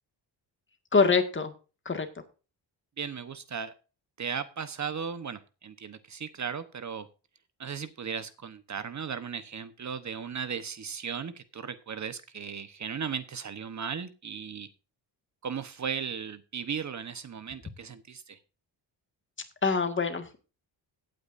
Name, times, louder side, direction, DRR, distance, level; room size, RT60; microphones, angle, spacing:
voice 1, 0.9-1.5 1.9-2.1 19.6-20.4, left 4 dB, 25° left, 7 dB, 1.9 m, -24 dB
voice 2, 3.0-3.7 4.2-7.1 7.6-14.7 15.4-18.4, right 6 dB, 40° right, 12 dB, 1.0 m, -36 dB
16.5 x 9.0 x 2.6 m, 0.33 s
cardioid pair, 125°, 43 cm